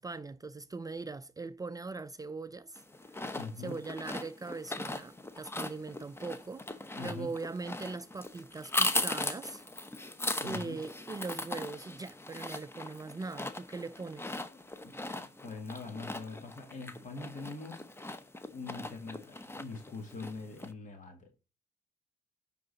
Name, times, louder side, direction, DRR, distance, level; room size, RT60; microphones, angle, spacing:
voice 1, 0.0-2.8 3.1-3.2 3.6-9.6 10.4-14.4, right 3 dB, 20° right, 0.4 m, -41 dB
sound 1, 2.8-20.7, left 2 dB, 15° left, 0.9 m, -39 dB
voice 2, 3.3-3.8 6.9-7.3 10.4-10.8 14.5-17.8 18.5-21.3, left 3 dB, 50° left, 1.8 m, -43 dB
9.4 x 3.9 x 4.0 m
supercardioid pair, 70°, 17 cm